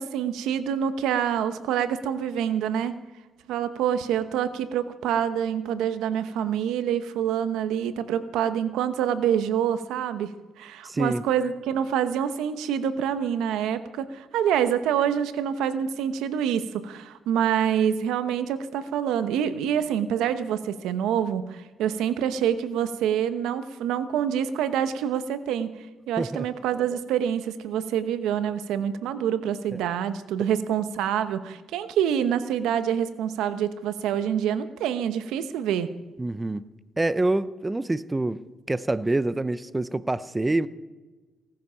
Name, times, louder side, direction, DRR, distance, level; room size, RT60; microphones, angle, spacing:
voice 1, 0.0-3.0 3.5-25.7 26.1-35.9, right 9 dB, 90° right, 12 dB, 1.0 m, -26 dB
voice 2, 10.8-11.3 26.2-26.5 29.7-29.8 36.2-36.6 37.0-40.7, right 2 dB, 15° right, 16 dB, 0.6 m, -26 dB
18.0 x 14.0 x 5.7 m, 1.2 s
cardioid pair, 90°, 0 cm